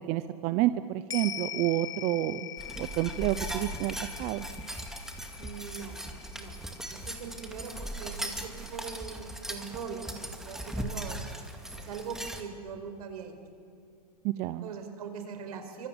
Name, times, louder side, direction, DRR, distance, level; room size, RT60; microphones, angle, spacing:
voice 1, 0.1-2.4 2.8-4.4 14.2-14.7, right 15 dB, 35° right, 13 dB, 0.7 m, -29 dB
sound 1, 1.1-9.7 10.0-10.1, left 11 dB, 15° left, 1.4 m, -43 dB
sound 2, 2.6-12.4, right 1 dB, ahead, 2.2 m, -39 dB
voice 2, 5.4-6.6 6.9-11.3 11.8-13.3 14.6-15.9, right 6 dB, 70° right, 6 dB, 5.1 m, -41 dB
28.0 x 25.0 x 8.1 m, 2.4 s
hypercardioid pair, 140°, 20 cm